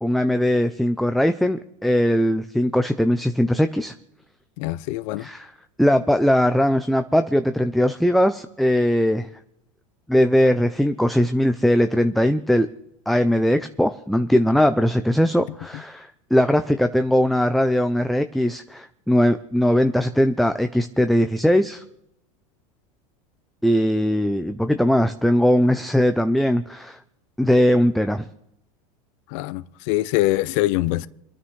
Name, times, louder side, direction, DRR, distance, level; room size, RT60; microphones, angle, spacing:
voice 1, 0.0-3.9 5.2-5.5 5.8-9.3 10.1-12.7 13.1-21.8 23.6-27.0 27.4-28.3, equal, ahead, 0.4 m, -20 dB
voice 2, 4.6-5.3 29.3-31.1, left 17 dB, 65° left, 0.6 m, -23 dB
29.0 x 9.6 x 3.2 m
supercardioid pair, 120°, 18 cm